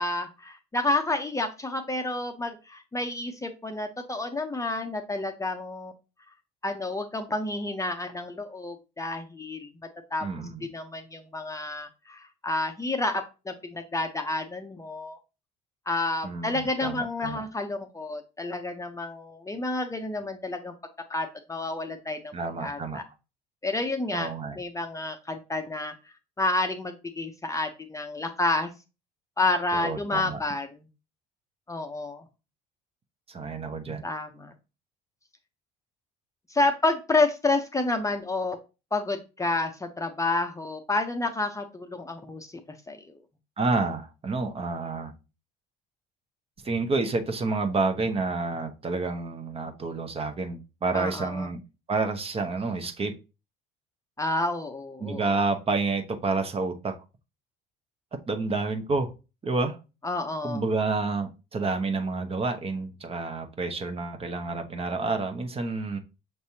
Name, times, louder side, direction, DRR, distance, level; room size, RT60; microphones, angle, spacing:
voice 1, 0.0-5.9 6.6-9.7 10.1-10.3 10.7-15.2 15.9-20.7 21.1-22.3 22.6-23.0 23.6-25.9 26.4-28.7 29.4-30.9 31.7-32.3 34.0-34.5 36.5-38.6 38.9-42.5 42.9-43.2 50.9-51.5 54.2-55.2 60.0-60.6, left 2 dB, 15° left, 0.6 m, -29 dB
voice 2, 10.2-10.7 16.2-17.4 22.3-23.0 24.1-24.6 29.7-30.4 33.3-34.1 43.6-45.1 46.6-51.6 51.9-53.1 55.0-57.0 58.3-59.1 59.4-59.8 60.4-66.0, right 3 dB, 30° right, 0.8 m, -29 dB
5.9 x 3.3 x 2.8 m
supercardioid pair, 85°, 19 cm